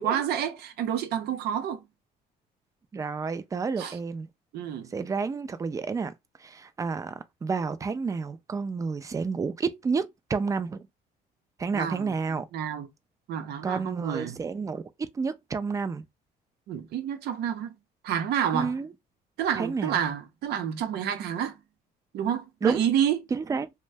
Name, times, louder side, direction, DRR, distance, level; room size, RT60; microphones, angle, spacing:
voice 1, 0.0-1.8 3.8-4.0 4.5-4.9 11.7-12.1 12.5-12.9 13.3-14.4 16.7-17.8 18.0-18.7 19.4-21.6 22.1-23.2, right 9 dB, 70° right, 0.6 m, -29 dB
voice 2, 2.9-4.3 4.9-6.1 6.4-10.9 11.6-12.5 13.6-16.0 18.5-18.9 19.6-20.0 22.6-22.8 23.3-23.7, right 5 dB, 20° right, 0.3 m, -30 dB
2.6 x 2.1 x 3.2 m
cardioid pair, 110°, 17 cm